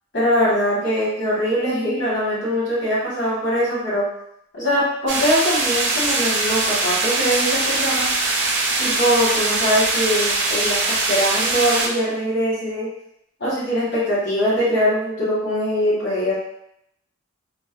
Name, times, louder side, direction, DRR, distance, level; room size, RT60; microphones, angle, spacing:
voice 1, 0.1-4.1 4.5-8.1 8.8-12.9 13.4-16.3, equal, 65° left, -7 dB, 1.2 m, -22 dB
sound 1, 5.1-11.9, right 3 dB, 60° right, 0.5 m, -22 dB
3.2 x 2.0 x 2.2 m, 0.77 s
head